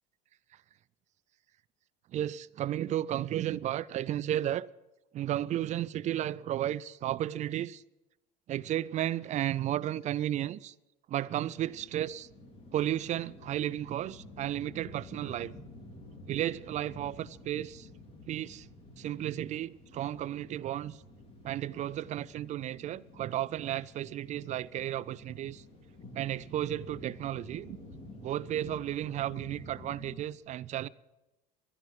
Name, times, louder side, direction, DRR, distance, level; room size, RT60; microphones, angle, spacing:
voice 1, 2.1-4.7 5.1-7.8 8.5-10.7 11.1-12.3 12.7-15.5 16.3-17.9 18.3-18.7 19.0-21.0 21.4-25.6 26.1-27.8 28.2-30.9, right 12 dB, 40° right, 0.4 m, -33 dB
sound 1, 11.5-30.2, left 1 dB, 30° left, 3.9 m, -51 dB
12.0 x 11.0 x 7.6 m
supercardioid pair, 115°, 19 cm